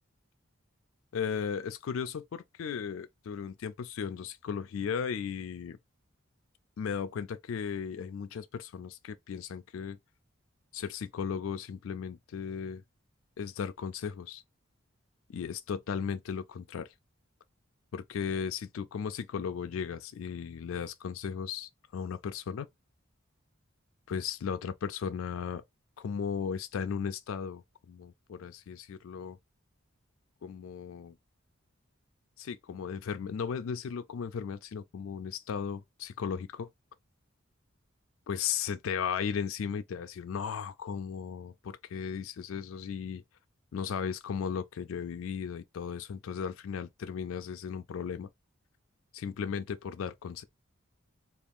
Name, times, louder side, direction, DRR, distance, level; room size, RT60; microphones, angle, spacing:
voice 1, 1.1-5.8 6.8-10.0 10.7-12.8 13.4-14.4 15.3-16.9 17.9-22.7 24.1-25.6 26.0-29.4 30.4-31.2 32.4-36.7 38.3-43.2 43.7-48.3 49.1-50.4, left 7 dB, 85° left, 0.4 m, -36 dB
3.4 x 2.4 x 3.5 m
head